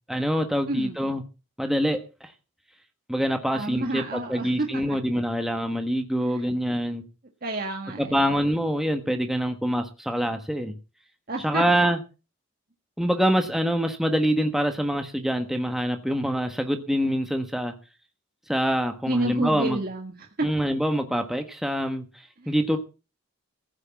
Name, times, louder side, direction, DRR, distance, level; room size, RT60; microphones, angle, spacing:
voice 1, 0.1-1.2 1.6-2.3 3.1-7.0 8.0-10.7 11.4-12.0 13.0-17.7 18.5-19.8 20.4-22.0 22.5-22.8, equal, ahead, 5 dB, 1.3 m, -25 dB
voice 2, 0.7-1.1 3.5-5.0 6.2-6.4 7.4-8.3 11.3-11.6 19.0-20.5 22.4-22.5, right 2 dB, 45° right, 2 dB, 1.6 m, -30 dB
15.0 x 6.4 x 7.2 m, 0.32 s
head